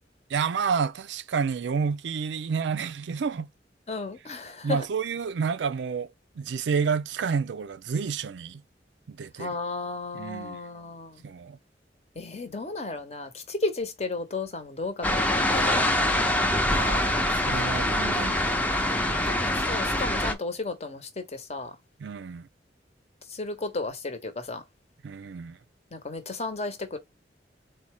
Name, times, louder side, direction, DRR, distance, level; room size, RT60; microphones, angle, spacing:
voice 1, 0.3-3.5 4.6-6.1 6.4-8.6 9.1-9.5 10.1-10.6 11.2-11.6 16.7-19.3 22.0-22.5 25.0-25.6, right 6 dB, 85° right, 0.4 m, -30 dB
voice 2, 3.9-4.8 9.4-11.2 12.1-15.9 19.3-21.8 23.3-24.6 25.9-27.0, left 3 dB, 35° left, 0.9 m, -34 dB
sound 1, 15.0-20.3, left 1 dB, 10° left, 0.6 m, -24 dB
4.1 x 2.2 x 4.6 m
head